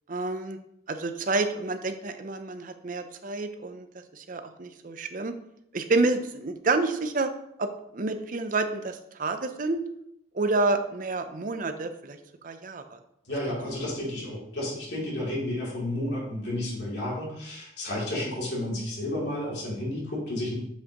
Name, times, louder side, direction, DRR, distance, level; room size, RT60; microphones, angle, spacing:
voice 1, 0.1-0.6 0.9-3.9 4.1-5.3 5.7-7.3 7.6-9.8 10.3-12.2 12.4-13.0, right 3 dB, 50° right, 8 dB, 0.6 m, -29 dB
voice 2, 13.3-20.5, left 1 dB, 70° left, -5 dB, 2.8 m, -31 dB
7.3 x 6.2 x 3.0 m, 0.77 s
head